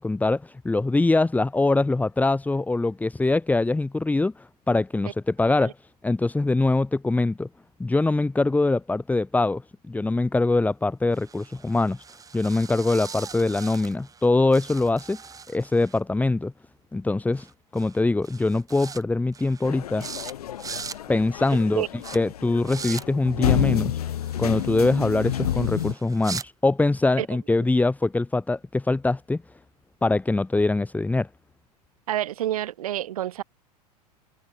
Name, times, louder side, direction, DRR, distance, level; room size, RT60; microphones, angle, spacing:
voice 1, 0.0-5.7 6.0-7.5 7.8-9.6 9.9-12.0 12.3-15.2 15.5-16.5 16.9-17.5 17.7-20.1 21.1-21.9 22.1-24.0 24.4-29.4 30.0-31.3, left 2 dB, 5° left, 2.8 m, -23 dB
sound 1, 11.1-14.3 14.5-16.0 17.4-17.5 17.8-18.0 18.2-19.0 19.3-19.7 20.0-20.3 20.6-21.0 21.4-21.6 22.0-22.2 22.6-23.0 24.2-26.5, right 6 dB, 15° right, 2.4 m, -40 dB
sound 2, 19.6-25.9, left 11 dB, 65° left, 1.6 m, -29 dB
voice 2, 32.1-33.4, right 12 dB, 60° right, 2.5 m, -27 dB
figure-of-eight pair, 90°, 21 cm